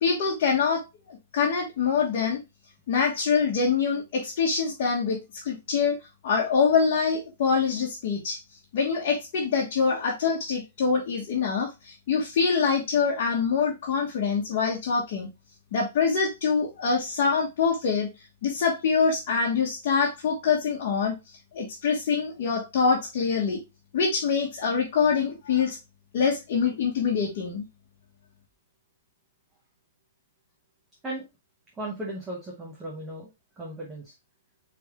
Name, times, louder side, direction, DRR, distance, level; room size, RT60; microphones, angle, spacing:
voice 1, 0.0-2.4 2.9-6.0 6.2-8.4 8.7-15.3 15.7-18.1 18.4-21.1 21.5-23.6 23.9-25.8 26.1-27.6, left 5 dB, 45° left, -3 dB, 1.3 m, -25 dB
voice 2, 31.7-33.3 33.6-34.1, right 1 dB, 10° right, -3 dB, 0.9 m, -36 dB
4.4 x 3.5 x 3.5 m, 0.24 s
hypercardioid pair, 170°, 0 cm